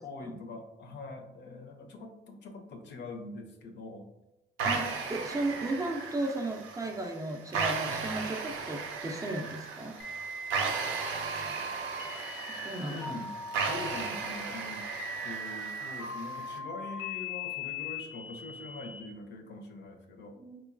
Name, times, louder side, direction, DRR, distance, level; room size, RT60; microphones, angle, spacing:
voice 1, 0.0-4.1 7.7-8.0 12.9-14.9 15.2-20.4, left 3 dB, 65° left, 4 dB, 0.5 m, -43 dB
voice 2, 4.6-10.0 12.5-13.2 20.4-20.6, right 2 dB, 15° right, 2 dB, 0.3 m, -35 dB
sound 1, 4.6-16.6, right 5 dB, 85° right, 0.4 m, -36 dB
sound 2, 10.0-19.0, left 2 dB, 90° left, 0.8 m, -40 dB
3.0 x 2.2 x 2.4 m, 0.94 s
cardioid pair, 90°, 20 cm